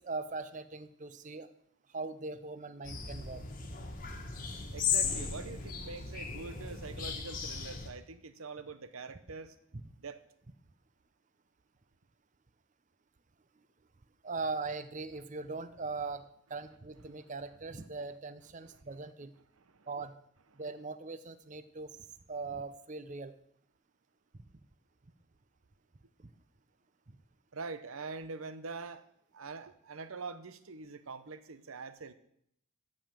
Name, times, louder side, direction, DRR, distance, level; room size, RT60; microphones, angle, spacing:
voice 1, 0.0-1.5 1.9-3.4 14.2-19.3 19.9-20.2 20.5-23.3 26.2-26.3 27.1-27.2, right 3 dB, 35° right, 0.6 m, -40 dB
sound 1, 2.8-7.9, left 6 dB, 40° left, 1.4 m, -36 dB
voice 2, 4.7-9.6 10.0-10.2 17.1-17.3 18.6-18.8 19.5-19.9 27.5-29.0 29.3-32.1, right 4 dB, 85° right, 0.8 m, -44 dB
14.5 x 5.2 x 7.5 m
head